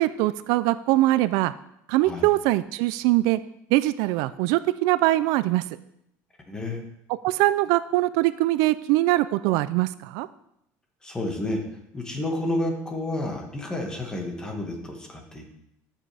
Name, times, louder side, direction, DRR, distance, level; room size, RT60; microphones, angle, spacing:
voice 1, 0.0-1.5 1.9-3.4 3.7-5.6 7.2-10.3, right 17 dB, 70° right, 15 dB, 0.3 m, -22 dB
voice 2, 6.5-6.8 11.0-11.6 11.9-15.5, left 1 dB, 10° left, 2 dB, 1.6 m, -30 dB
12.5 x 7.3 x 3.4 m, 0.79 s
cardioid pair, 150°, 6 cm